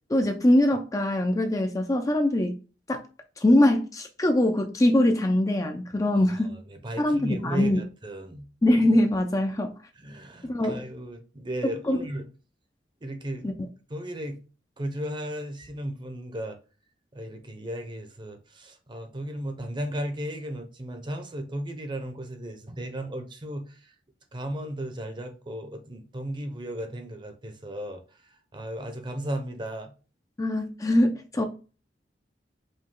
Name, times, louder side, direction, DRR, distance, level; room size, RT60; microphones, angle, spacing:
voice 1, 0.1-2.6 2.9-3.0 3.4-6.6 7.0-7.8 8.6-9.7 10.4-10.8 11.6-12.0 13.4-13.5 30.4-31.4, left 1 dB, 20° left, 0.4 m, -23 dB
voice 2, 6.4-8.5 10.0-12.3 13.0-13.5 13.9-14.4 14.8-16.6 17.1-23.9 24.3-28.0 28.5-29.9, right 1 dB, 25° right, 0.7 m, -35 dB
5.2 x 2.3 x 3.7 m
head